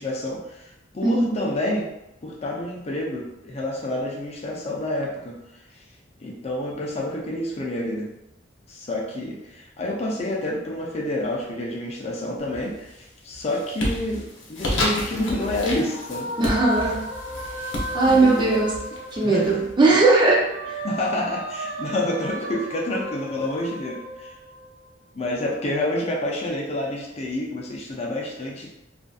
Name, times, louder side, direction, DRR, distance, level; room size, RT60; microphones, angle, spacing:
voice 1, 0.0-1.9 2.2-5.6 6.2-8.1 8.7-16.3 18.1-18.6 19.2-19.6 20.8-24.4 25.1-28.7, left 1 dB, 35° left, -2 dB, 0.5 m, -28 dB
voice 2, 1.0-1.4 16.4-17.0 17.9-18.8 19.1-20.8, right 3 dB, 25° right, -2 dB, 0.4 m, -19 dB
sound 1, 12.4-12.9 13.3-19.9, left 1 dB, 85° left, 0.6 m, -31 dB
sound 2, 15.0-19.8 20.2-24.9, equal, 70° right, 0.7 m, -35 dB
2.5 x 2.5 x 2.2 m, 0.86 s
head